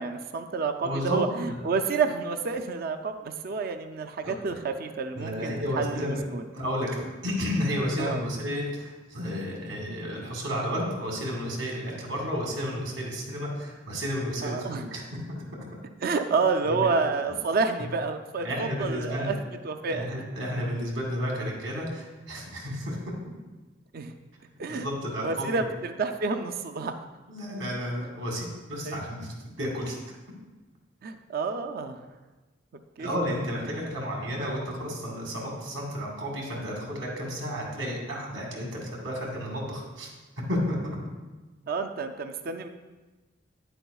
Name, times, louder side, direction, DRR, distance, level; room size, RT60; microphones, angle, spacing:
voice 1, 0.0-6.0 6.3-6.4 8.0-8.2 14.4-14.8 16.0-19.4 19.6-20.1 23.9-24.1 24.6-24.9 25.2-27.0 28.8-29.0 31.0-32.0 33.0-33.1 41.7-42.7, right 4 dB, 50° right, 7 dB, 0.4 m, -29 dB
voice 2, 0.8-1.7 4.2-4.6 5.1-6.2 6.5-15.0 16.7-16.9 18.4-19.4 19.9-23.0 24.7-25.7 27.3-30.0 33.0-40.1 40.5-41.0, equal, 85° right, -2 dB, 2.1 m, -32 dB
9.9 x 7.9 x 2.3 m, 1.2 s
head